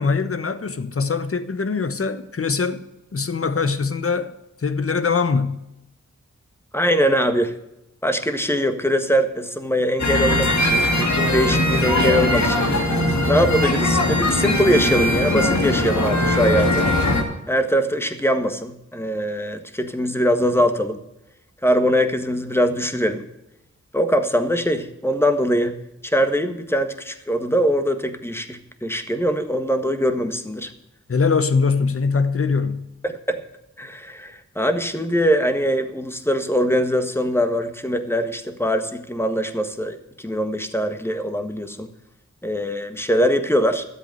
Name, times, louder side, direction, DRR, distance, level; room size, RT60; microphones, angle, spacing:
voice 1, 0.0-2.8 3.1-4.3 4.6-5.6 31.1-32.9, left 5 dB, 50° left, 1.1 m, -22 dB
voice 2, 6.7-7.6 8.0-12.7 13.3-16.9 17.5-21.0 21.6-23.2 23.9-25.8 26.0-30.7 33.0-33.4 33.8-41.9 42.4-43.8, equal, 10° left, 1.6 m, -22 dB
sound 1, 10.0-17.2, left 1 dB, 70° left, 2.6 m, -20 dB
12.5 x 8.2 x 7.7 m
cardioid pair, 55°, 29 cm